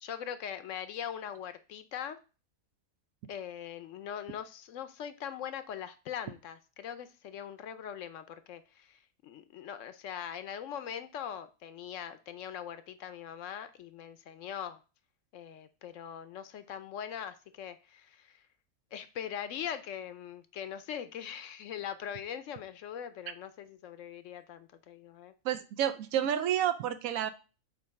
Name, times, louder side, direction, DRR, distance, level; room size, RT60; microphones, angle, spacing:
voice 1, 0.0-2.2 3.3-14.8 15.3-18.4 18.9-25.3, left 9 dB, 70° left, 11 dB, 0.9 m, -41 dB
voice 2, 25.4-27.3, right 10 dB, 85° right, 11 dB, 1.1 m, -30 dB
6.9 x 2.7 x 5.7 m, 0.33 s
omnidirectional pair, 1.4 m